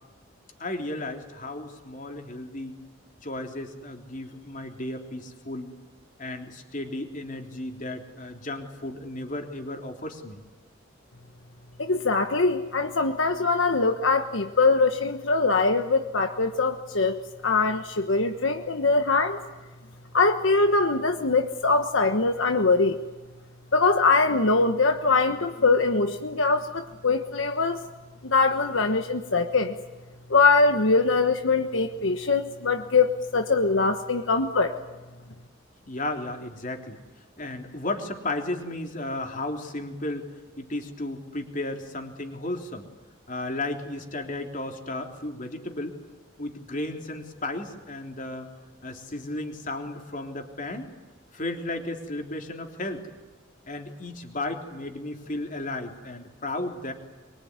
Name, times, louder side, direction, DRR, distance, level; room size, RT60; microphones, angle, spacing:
voice 1, 0.6-2.8 3.2-5.7 6.2-10.4 35.9-37.0 37.4-40.3 40.6-42.9 43.3-46.0 46.4-48.5 48.8-50.9 51.3-53.1 53.7-56.9, left 2 dB, 40° left, 4 dB, 3.4 m, -34 dB
voice 2, 11.8-19.4 20.1-23.0 23.7-27.8 28.2-29.7 30.3-34.7, left 3 dB, 80° left, 6 dB, 1.3 m, -22 dB
23.5 x 23.5 x 9.7 m, 1.2 s
head